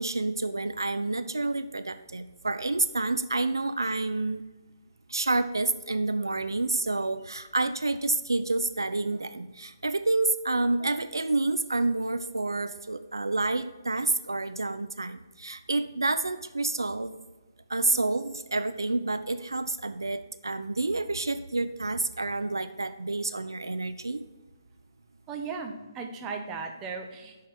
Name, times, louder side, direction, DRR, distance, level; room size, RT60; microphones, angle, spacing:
voice 1, 0.0-4.4 5.1-17.2 17.7-24.2, right 2 dB, 85° right, 11 dB, 0.4 m, -29 dB
voice 2, 25.3-27.4, right 5 dB, 20° right, 3 dB, 0.9 m, -36 dB
6.8 x 5.6 x 5.4 m, 1.1 s
figure-of-eight pair, 140°, 2 cm